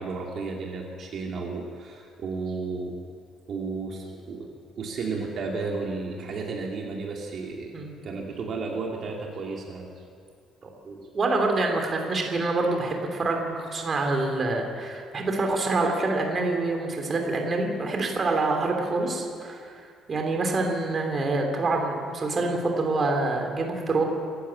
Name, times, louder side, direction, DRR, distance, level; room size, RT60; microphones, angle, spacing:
voice 1, 0.0-3.0 3.5-4.5 4.8-9.9, right 4 dB, 45° right, 0 dB, 2.7 m, -33 dB
voice 2, 10.8-19.7 20.1-24.0, right 3 dB, 30° right, 2 dB, 3.0 m, -26 dB
27.0 x 14.5 x 8.7 m, 2.3 s
cardioid pair, 165°, 0 cm